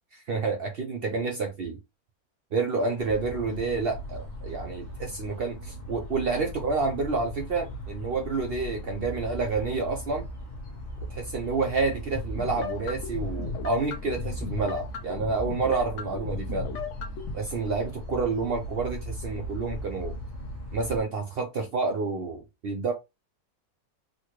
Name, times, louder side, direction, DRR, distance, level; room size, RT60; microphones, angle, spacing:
voice 1, 0.1-1.8 2.5-10.3 11.1-16.7 17.3-20.1 20.7-22.9, right 4 dB, 60° right, 0.6 m, -29 dB
sound 1, 3.0-21.0, equal, 35° left, 0.9 m, -38 dB
sound 2, 12.1-17.3, left 5 dB, 65° left, 0.8 m, -35 dB
4.0 x 2.3 x 3.0 m
omnidirectional pair, 1.5 m